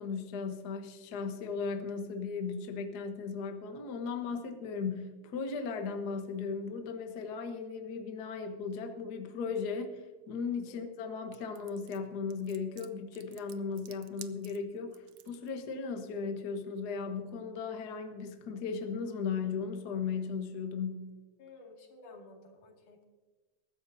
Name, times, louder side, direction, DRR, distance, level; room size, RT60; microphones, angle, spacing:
voice 1, 0.0-10.0 10.3-21.1, left 5 dB, 55° left, 5 dB, 1.1 m, -37 dB
sound 1, 11.3-15.5, right 12 dB, 80° right, 1.3 m, -53 dB
voice 2, 21.4-23.0, left 3 dB, 80° left, 0 dB, 3.8 m, -53 dB
22.0 x 12.5 x 2.7 m, 1.3 s
omnidirectional pair, 3.6 m